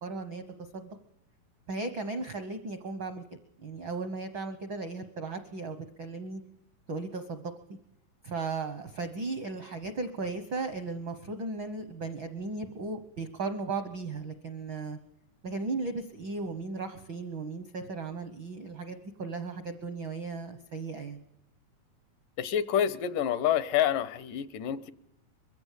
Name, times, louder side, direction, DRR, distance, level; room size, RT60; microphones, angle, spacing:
voice 1, 0.0-0.4 0.7-1.0 1.7-3.2 3.6-6.4 6.9-7.4 7.7-7.8 8.2-15.0 15.4-21.2, right 3 dB, 70° right, 9 dB, 1.1 m, -36 dB
voice 2, 22.4-24.9, left 10 dB, 80° left, 15 dB, 2.5 m, -28 dB
22.5 x 15.0 x 8.3 m, 0.81 s
omnidirectional pair, 3.8 m